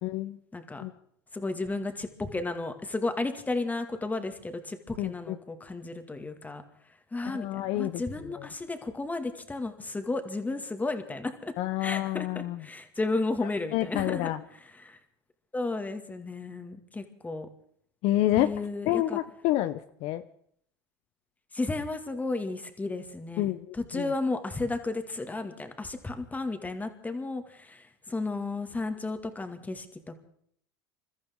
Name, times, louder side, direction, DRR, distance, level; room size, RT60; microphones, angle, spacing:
voice 1, 0.0-0.4 0.8-0.9 5.0-5.4 7.2-8.5 11.6-12.6 13.7-14.4 18.0-18.5 18.9-20.2 23.4-24.1, left 15 dB, 50° left, 10 dB, 0.7 m, -28 dB
voice 2, 0.5-0.8 1.3-6.6 7.1-11.5 11.8-14.3 14.6-15.0 15.5-17.5 18.4-19.2 21.5-30.2, left 3 dB, 10° left, 7 dB, 2.1 m, -33 dB
28.0 x 13.5 x 3.7 m, 0.65 s
hypercardioid pair, 95°, 13 cm